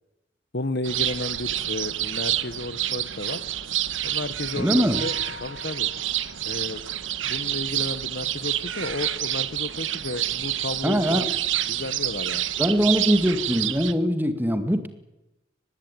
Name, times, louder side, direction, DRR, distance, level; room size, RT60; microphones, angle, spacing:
voice 1, 0.5-3.4 4.0-5.1 5.4-5.9 6.4-6.8 7.2-11.2 11.7-12.5, left 2 dB, 55° left, 14 dB, 1.3 m, -32 dB
sound 1, 0.8-13.9, right 12 dB, 80° right, 1.3 m, -28 dB
voice 2, 4.5-5.0 10.8-11.3 12.6-14.9, equal, 10° right, 8 dB, 2.1 m, -22 dB
Mallet percussion, 4.9-6.7, left 5 dB, 75° left, 2.5 m, -44 dB
24.0 x 20.0 x 9.1 m, 0.99 s
head